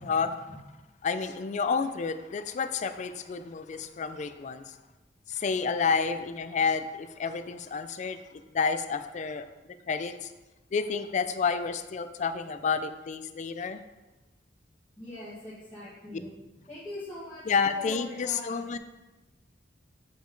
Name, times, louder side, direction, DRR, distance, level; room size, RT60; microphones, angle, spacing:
voice 1, 1.0-4.8 5.3-8.2 8.5-9.5 9.9-10.3 10.7-13.8 17.5-18.8, left 5 dB, 40° left, 11 dB, 0.4 m, -30 dB
voice 2, 15.0-18.8, left 1 dB, 15° left, -11 dB, 1.7 m, -43 dB
6.9 x 5.1 x 3.8 m, 1.1 s
head